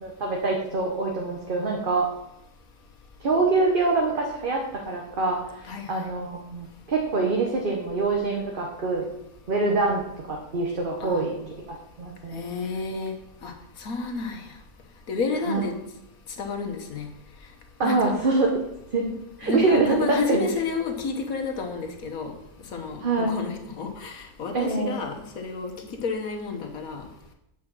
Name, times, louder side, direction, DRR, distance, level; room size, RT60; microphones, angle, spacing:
voice 1, 0.0-2.1 3.2-9.1 9.5-10.0 10.3-11.3 11.7-12.5 15.5-15.6 17.8-18.5 18.9-19.0 19.4-20.5 23.0-23.3 24.5-25.0, right 3 dB, 40° right, 0 dB, 1.1 m, -25 dB
voice 2, 5.6-6.1 11.0-11.2 12.3-13.1 13.4-13.5 13.8-14.5 15.1-15.7 16.4-17.1 17.8-18.1 19.1-22.3 22.7-25.7 26.0-27.1, left 4 dB, 70° left, 3 dB, 1.6 m, -30 dB
8.1 x 4.9 x 6.2 m, 0.85 s
omnidirectional pair, 1.6 m